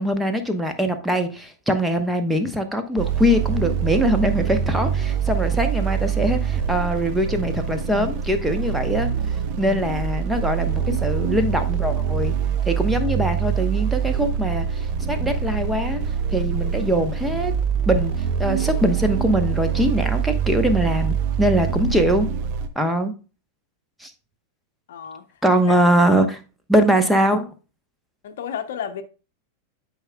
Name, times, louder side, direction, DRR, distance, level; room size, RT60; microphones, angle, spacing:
voice 1, 0.0-9.1 9.6-12.3 12.6-16.0 16.3-17.5 17.9-18.1 18.4-22.3 22.8-23.1 24.0-24.1 25.4-26.4 26.7-27.5, equal, 5° right, 1.0 m, -22 dB
sound 1, 3.0-22.7, right 8 dB, 40° right, 0.8 m, -24 dB
voice 2, 24.9-25.3 25.7-25.8 28.2-29.0, left 8 dB, 60° left, 0.8 m, -32 dB
12.0 x 5.0 x 2.3 m
figure-of-eight pair, 90°, 0 cm